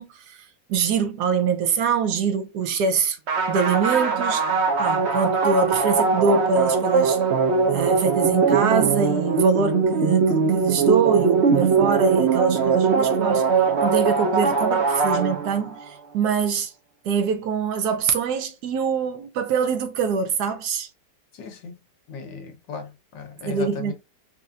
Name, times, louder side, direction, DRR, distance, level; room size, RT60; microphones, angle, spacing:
voice 1, 0.0-3.2 3.5-7.2 7.7-13.4 13.8-16.7 17.0-20.9 23.4-23.9, right 5 dB, 70° right, 1.1 m, -24 dB
sound 1, 3.3-15.8, right 5 dB, 50° right, 0.8 m, -21 dB
voice 2, 21.3-21.7 22.1-23.9, left 5 dB, 80° left, 1.6 m, -36 dB
4.1 x 2.7 x 2.4 m
omnidirectional pair, 1.9 m